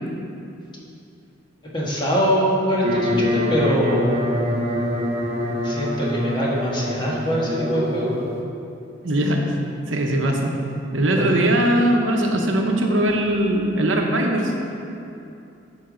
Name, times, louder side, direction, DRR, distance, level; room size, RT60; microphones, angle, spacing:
voice 1, 1.7-4.2 5.6-8.2 11.2-11.3, equal, 25° left, -5 dB, 1.4 m, -23 dB
sound 1, 2.8-8.4, left 1 dB, 35° right, 0.7 m, -25 dB
voice 2, 9.0-9.4 9.9-10.5 10.9-14.5, right 1 dB, 90° right, 1 dB, 0.9 m, -20 dB
11.0 x 5.2 x 3.9 m, 2.7 s
head